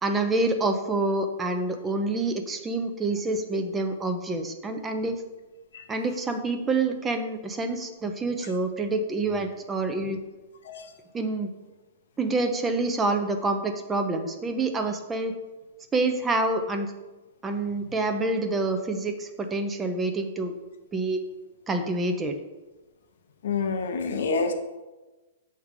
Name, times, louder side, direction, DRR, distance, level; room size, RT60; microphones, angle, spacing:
voice 1, 0.0-5.2 5.9-10.2 11.1-11.5 12.2-15.3 15.9-16.9 17.4-20.6 20.9-21.2 21.7-22.4, right 2 dB, 15° right, 6 dB, 0.5 m, -27 dB
voice 2, 23.4-24.5, left 4 dB, 75° left, 7 dB, 0.8 m, -27 dB
6.9 x 3.2 x 5.1 m, 1.1 s
hypercardioid pair, 150°, 0 cm